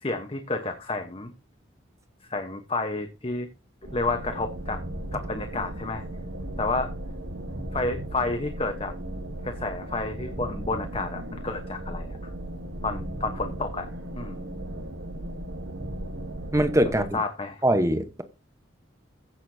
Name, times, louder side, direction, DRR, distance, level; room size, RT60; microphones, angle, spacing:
voice 1, 0.0-1.3 2.3-3.5 3.9-4.8 5.1-6.0 6.6-6.9 7.7-8.9 9.4-12.3 12.8-14.4 17.1-17.6, left 3 dB, 30° left, 1.0 m, -30 dB
sound 1, 3.8-17.1, right 1 dB, 75° right, 1.3 m, -36 dB
voice 2, 16.5-17.2 17.6-18.2, right 1 dB, 15° right, 1.0 m, -22 dB
15.5 x 6.7 x 2.7 m
head